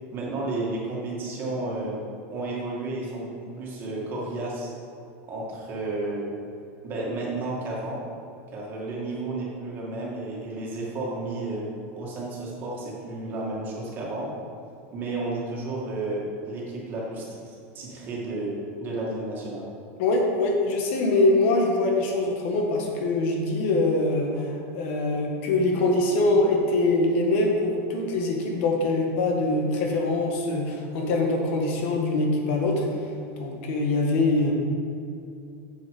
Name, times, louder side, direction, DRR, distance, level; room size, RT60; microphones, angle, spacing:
voice 1, 0.1-2.0 2.3-4.7 5.3-6.3 6.8-8.0 8.5-11.7 11.9-14.3 14.9-19.7, right 2 dB, 30° right, -4 dB, 2.3 m, -32 dB
voice 2, 20.0-32.9 33.4-34.5, left 2 dB, 65° left, 0 dB, 1.8 m, -23 dB
7.5 x 6.7 x 5.5 m, 2.7 s
supercardioid pair, 160°, 7 cm